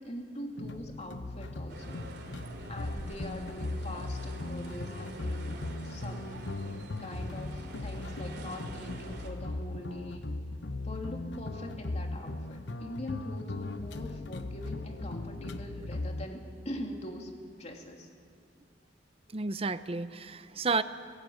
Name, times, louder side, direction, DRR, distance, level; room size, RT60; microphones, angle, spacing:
voice 1, 0.0-2.1 2.7-6.5 7.0-10.3 10.8-17.3 17.6-18.1, left 1 dB, 40° left, 2 dB, 2.9 m, -43 dB
sound 1, 0.6-16.3, left 2 dB, 85° left, 1.0 m, -38 dB
sound 2, 1.7-9.3, right 2 dB, 65° right, 3.2 m, -47 dB
voice 2, 19.3-20.8, right 4 dB, 35° right, 12 dB, 0.7 m, -31 dB
28.5 x 18.5 x 9.4 m, 2.3 s
head